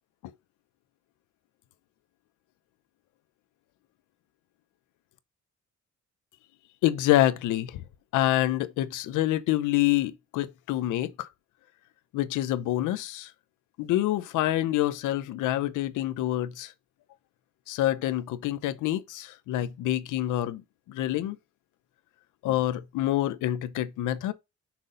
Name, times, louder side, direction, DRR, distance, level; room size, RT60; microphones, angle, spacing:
voice 1, 6.8-7.8 8.1-11.3 12.1-13.3 13.8-16.7 17.7-20.6 20.9-21.4 22.4-24.3, left 14 dB, 90° left, 0.8 m, -27 dB
6.0 x 3.9 x 5.3 m
cardioid pair, 90°, 30 cm